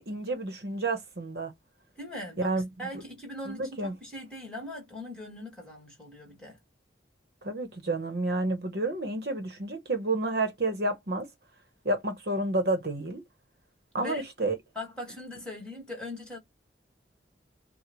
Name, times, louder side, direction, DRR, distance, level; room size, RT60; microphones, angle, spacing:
voice 1, 0.0-1.5 2.4-2.7 3.4-3.9 7.4-11.3 11.8-13.2 13.9-14.5, right 2 dB, 60° right, 1.1 m, -30 dB
voice 2, 2.0-6.6 14.0-14.2 14.8-16.4, left 1 dB, 5° left, 2.0 m, -40 dB
6.3 x 2.3 x 3.1 m
head